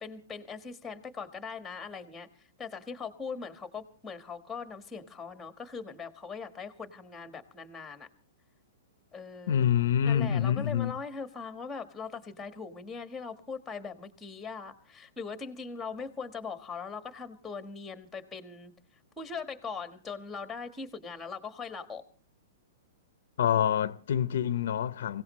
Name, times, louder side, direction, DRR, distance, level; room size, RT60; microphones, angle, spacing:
voice 1, 0.0-8.1 9.1-9.7 10.1-18.7 19.2-22.0, left 5 dB, 5° left, 1.3 m, -40 dB
voice 2, 9.5-11.0 23.4-25.2, left 9 dB, 65° left, 0.7 m, -26 dB
24.5 x 17.0 x 3.1 m
hypercardioid pair, 165°, 0 cm